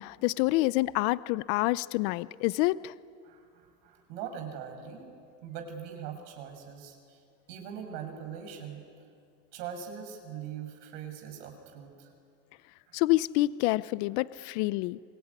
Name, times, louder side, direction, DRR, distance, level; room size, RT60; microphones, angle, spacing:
voice 1, 0.0-2.9 12.9-15.0, left 19 dB, 60° left, 18 dB, 0.8 m, -27 dB
voice 2, 3.2-5.1 5.4-7.2 7.5-8.8 9.5-12.1 12.9-13.0, right 8 dB, 70° right, 4 dB, 6.7 m, -41 dB
26.0 x 22.0 x 9.7 m, 2.2 s
supercardioid pair, 125°, 39 cm